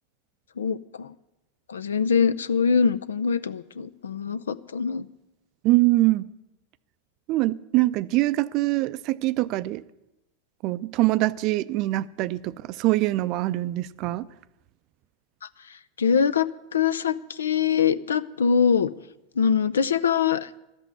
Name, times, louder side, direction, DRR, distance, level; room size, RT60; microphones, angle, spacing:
voice 1, 0.6-1.1 1.7-5.1 15.7-18.9 19.4-20.5, left 6 dB, 70° left, 0.5 m, -23 dB
voice 2, 5.6-6.3 7.3-9.8 10.6-14.3, right 18 dB, 45° right, 0.5 m, -23 dB
12.0 x 8.1 x 9.5 m
figure-of-eight pair, 85°, 0 cm